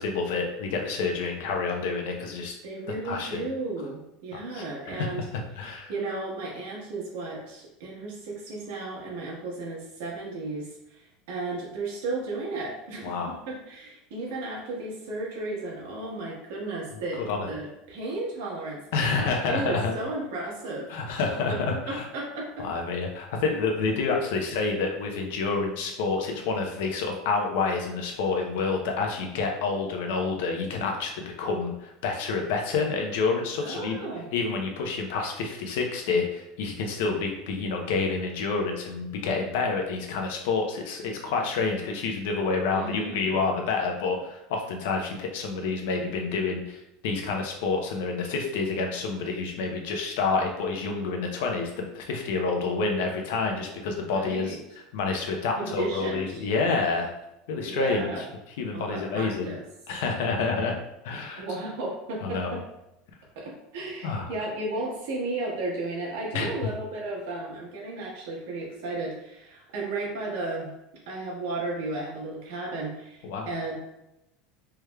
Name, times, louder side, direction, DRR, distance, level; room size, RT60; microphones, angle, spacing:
voice 1, 0.0-2.6 3.0-3.4 4.3-5.1 5.6-5.9 13.0-13.4 17.3-17.5 18.9-19.9 20.9-22.1 22.6-34.0 34.3-54.6 54.9-57.1 57.5-58.2 58.6-59.5 59.9-60.8 61.0-61.4 62.2-62.5 64.0-64.3 66.3-66.5 73.2-73.5, left 4 dB, 75° left, 2 dB, 0.6 m, -28 dB
voice 2, 2.6-5.3 5.9-21.0 21.5-22.7 33.6-34.3 42.7-43.3 54.1-54.6 55.6-56.5 57.7-58.2 58.7-59.6 61.4-62.6 63.3-70.7 71.1-73.8, right 2 dB, 80° right, -3 dB, 1.2 m, -34 dB
3.4 x 3.2 x 2.2 m, 0.88 s
supercardioid pair, 155°, 0 cm